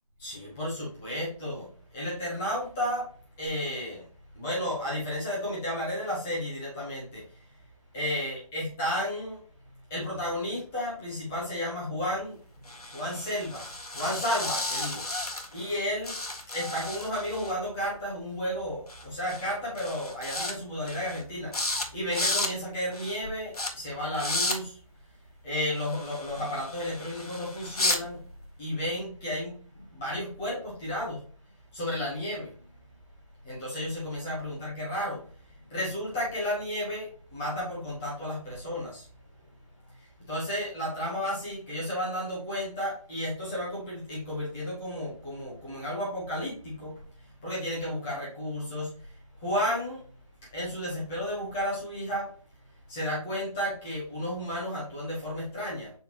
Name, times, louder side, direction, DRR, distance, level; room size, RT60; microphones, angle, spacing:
voice 1, 0.2-3.1 3.4-4.1 4.3-7.5 7.9-9.4 9.9-12.4 12.9-16.2 16.5-24.8 25.4-28.2 28.6-31.2 31.7-32.5 33.4-39.1 39.9-50.0 50.5-52.3 52.9-55.9, equal, 5° left, -7 dB, 0.6 m, -33 dB
sound 1, 12.7-15.8 16.0-17.5 18.9-19.0 19.3-19.5 19.8-20.5 20.9-21.2 21.5-21.9 22.1-22.5 22.9-23.2 23.5-23.7 24.1-24.6 25.8-28.0, left 2 dB, 85° left, 1.6 m, -33 dB
7.2 x 4.5 x 2.9 m, 0.43 s
figure-of-eight pair, 165°, 19 cm